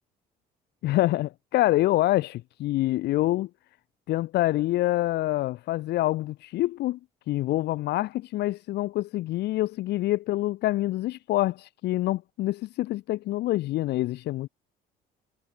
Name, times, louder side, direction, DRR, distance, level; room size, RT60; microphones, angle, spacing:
voice 1, 0.8-3.5 4.1-7.0 7.3-14.5, left 16 dB, 80° left, 7.4 m, -26 dB
cardioid pair, 110°, 17 cm